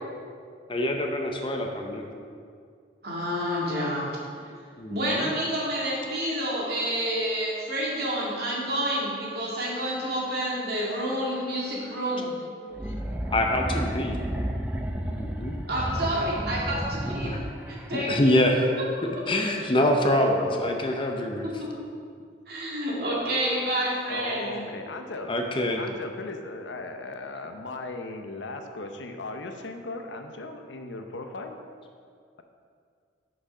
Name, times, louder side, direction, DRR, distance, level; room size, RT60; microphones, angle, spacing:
voice 1, 0.7-2.1 4.8-5.3 12.7-12.8 13.3-14.2 15.1-15.5 17.2-17.4 17.9-18.7 19.0-21.5 25.3-25.9, left 1 dB, 30° left, 3 dB, 0.7 m, -25 dB
voice 2, 3.0-4.1 4.9-12.3 15.7-17.4 17.7-18.4 18.8-18.9 20.2-20.3 21.4-21.8 22.5-24.6, equal, 60° right, -5 dB, 2.1 m, -29 dB
sound 1, 12.7-18.0, right 1 dB, 10° right, 0.4 m, -32 dB
voice 3, 20.4-21.0 24.1-25.3 25.7-31.6, left 2 dB, 90° left, 5 dB, 0.7 m, -37 dB
6.2 x 6.1 x 5.4 m, 2.2 s
head